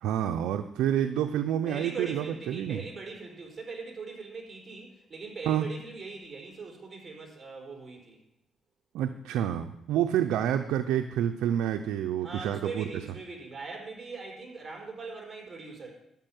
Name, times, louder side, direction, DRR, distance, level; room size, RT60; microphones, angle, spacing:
voice 1, 0.0-2.8 5.5-5.7 8.9-12.9, right 10 dB, 90° right, 6 dB, 0.6 m, -28 dB
voice 2, 1.7-8.2 12.2-15.9, right 4 dB, 30° right, 0 dB, 4.2 m, -41 dB
12.0 x 5.6 x 9.1 m, 0.80 s
cardioid pair, 90°, 0 cm